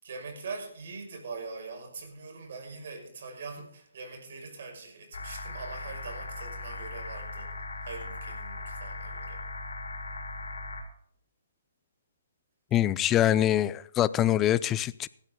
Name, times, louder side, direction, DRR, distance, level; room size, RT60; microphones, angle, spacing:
voice 1, 0.0-7.5 7.8-9.4, right 4 dB, 60° right, 6.0 m, -42 dB
sound 1, 5.1-10.8, left 2 dB, 90° left, 4.4 m, -39 dB
voice 2, 12.7-15.1, left 12 dB, 20° left, 0.5 m, -24 dB
16.5 x 12.5 x 3.8 m
hypercardioid pair, 150°, 0 cm